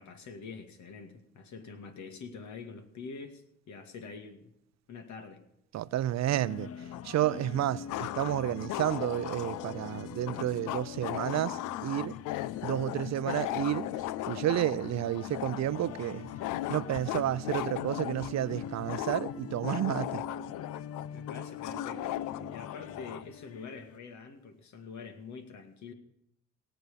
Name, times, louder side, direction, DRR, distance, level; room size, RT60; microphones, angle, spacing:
voice 1, 0.0-4.6 4.9-5.4 21.1-22.2 22.5-25.9, left 5 dB, 70° left, 2.3 m, -45 dB
voice 2, 5.7-6.7 7.0-12.2 12.6-13.9 14.3-16.3 16.7-20.2, right 12 dB, 60° right, 0.6 m, -31 dB
sound 1, 6.3-24.0, left 7 dB, 50° left, 0.7 m, -43 dB
sound 2, 6.9-7.0 7.9-23.3, left 15 dB, 85° left, 0.5 m, -38 dB
18.0 x 7.9 x 7.0 m
cardioid pair, 90°, 30 cm